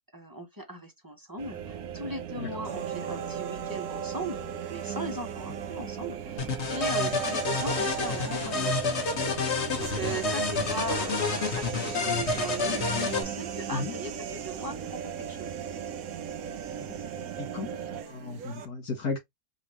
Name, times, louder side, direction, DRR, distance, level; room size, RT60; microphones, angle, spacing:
voice 1, 0.1-4.4 4.7-8.8 9.5-15.5, right 1 dB, 15° right, 0.9 m, -38 dB
sound 1, 1.4-18.0, right 8 dB, 65° right, 1.1 m, -39 dB
sound 2, 2.6-18.7, right 7 dB, 90° right, 1.4 m, -40 dB
sound 3, 6.4-13.2, left 3 dB, 50° left, 1.4 m, -29 dB
voice 2, 17.4-19.2, left 4 dB, 75° left, 2.6 m, -35 dB
5.2 x 2.7 x 3.1 m
omnidirectional pair, 1.6 m